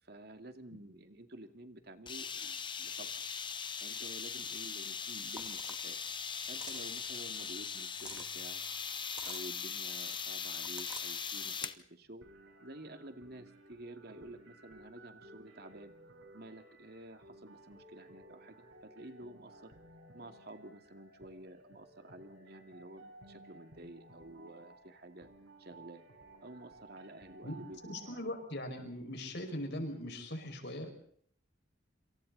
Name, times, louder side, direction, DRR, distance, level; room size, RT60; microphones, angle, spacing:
voice 1, 0.0-3.2 3.8-6.0 6.5-8.6 9.2-12.3 12.6-15.9 16.3-19.7 20.1-25.3 25.6-26.0 26.4-28.2, right 1 dB, 55° right, 6 dB, 2.4 m, -51 dB
sound 1, 2.1-11.8, left 6 dB, 25° left, 1.0 m, -40 dB
sound 2, 5.4-5.9 6.4-7.0 7.8-8.3 9.0-9.5 10.4-11.1, right 1 dB, 5° right, 1.6 m, -48 dB
sound 3, 12.2-28.2, right 1 dB, 80° right, 5.6 m, -57 dB
voice 2, 27.8-31.0, left 1 dB, 60° left, 4 dB, 5.7 m, -40 dB
27.5 x 27.5 x 4.1 m, 0.62 s
head